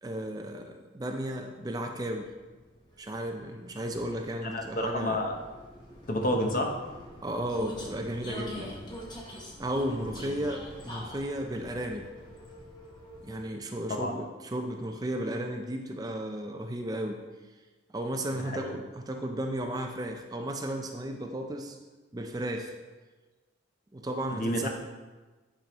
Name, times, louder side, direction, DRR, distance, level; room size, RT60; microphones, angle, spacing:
voice 1, 0.0-2.3 3.0-5.2 7.2-8.7 9.1-12.1 13.2-17.2 17.9-21.8 22.1-22.7 23.9-24.7, right 1 dB, 20° right, 4 dB, 0.4 m, -34 dB
Vehicle, 2.2-13.7, equal, 25° left, 1.0 m, -45 dB
voice 2, 4.5-5.4 6.1-6.7 8.6-8.7 10.3-10.4 13.9-14.1 18.5-18.7 24.3-24.7, left 1 dB, 50° left, 2 dB, 0.9 m, -30 dB
9.1 x 5.0 x 3.0 m, 1.2 s
head